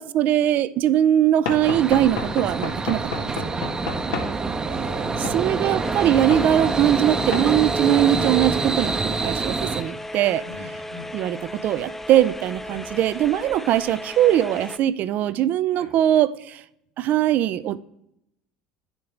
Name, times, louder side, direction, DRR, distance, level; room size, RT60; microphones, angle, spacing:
voice 1, 0.0-3.3 5.3-10.4 11.1-16.6 17.0-17.8, right 11 dB, 55° right, 0.4 m, -21 dB
Knock / Wood, 1.5-4.3 5.2-5.4 6.3-6.5 7.3-7.5, left 5 dB, 85° left, 1.4 m, -30 dB
sound 1, 1.6-9.8, right 4 dB, 20° right, 0.7 m, -26 dB
voice 2, 4.6-5.6 6.4-6.6 10.4-11.1 12.6-12.8 15.7-15.9, equal, 90° right, 2.5 m, -39 dB
sound 2, 5.8-14.8, left 1 dB, 10° left, 0.4 m, -36 dB
9.7 x 7.1 x 3.3 m
supercardioid pair, 100°, 3 cm